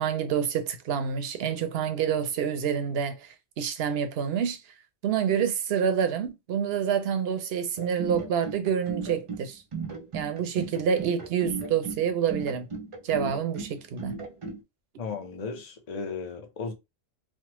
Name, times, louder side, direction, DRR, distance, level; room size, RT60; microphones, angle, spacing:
voice 1, 0.0-4.6 5.0-9.6 10.1-12.7 13.0-14.1, right 7 dB, 65° right, 0.8 m, -27 dB
sound 1, 7.8-14.6, right 4 dB, 45° right, 0.4 m, -36 dB
voice 2, 15.0-16.7, left 5 dB, 40° left, 0.7 m, -35 dB
3.2 x 2.0 x 2.9 m
omnidirectional pair, 1.2 m